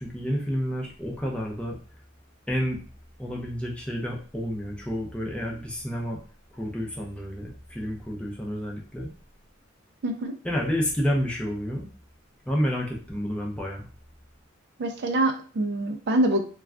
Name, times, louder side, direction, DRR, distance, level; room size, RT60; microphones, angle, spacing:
voice 1, 0.0-1.8 2.5-2.8 3.2-6.2 6.5-9.1 10.4-11.9 12.5-13.9, equal, 5° left, -2 dB, 0.5 m, -30 dB
voice 2, 10.0-10.3 14.8-16.4, right 1 dB, 55° right, 5 dB, 0.4 m, -25 dB
2.3 x 2.2 x 3.5 m, 0.39 s
head